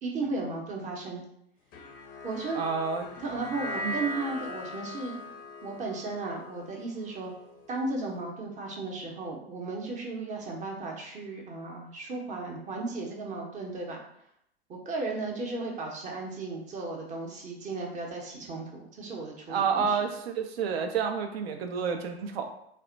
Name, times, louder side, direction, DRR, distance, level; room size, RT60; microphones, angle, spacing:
voice 1, 0.0-1.2 2.2-2.7 3.2-5.2 5.6-7.3 7.7-14.0 14.9-20.0, right 3 dB, 25° right, -1 dB, 0.7 m, -35 dB
sound 1, 1.7-8.1, left 1 dB, 30° left, 0.4 m, -40 dB
voice 2, 2.5-3.1 3.8-3.9 19.5-22.5, right 6 dB, 70° right, 6 dB, 0.5 m, -29 dB
2.1 x 2.0 x 3.7 m, 0.73 s
hypercardioid pair, 100°, 32 cm